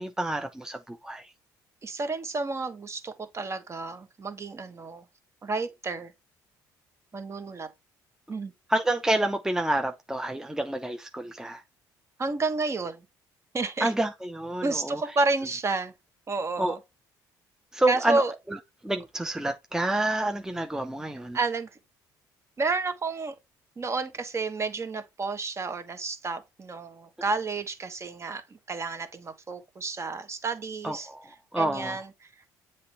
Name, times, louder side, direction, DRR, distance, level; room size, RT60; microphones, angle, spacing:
voice 1, 0.0-1.3 8.7-11.6 13.8-15.0 16.6-16.7 17.7-18.2 18.8-21.4 30.8-31.3 31.5-32.0, right 1 dB, 5° right, 0.7 m, -28 dB
voice 2, 1.8-5.0 5.4-6.1 7.1-7.7 8.3-8.5 12.2-13.0 13.5-13.9 14.6-15.9 16.3-16.8 17.9-18.3 21.3-21.7 22.6-23.3 23.8-31.1 31.6-32.3, right 3 dB, 35° right, 1.2 m, -30 dB
7.5 x 3.3 x 4.0 m
supercardioid pair, 75°, 9 cm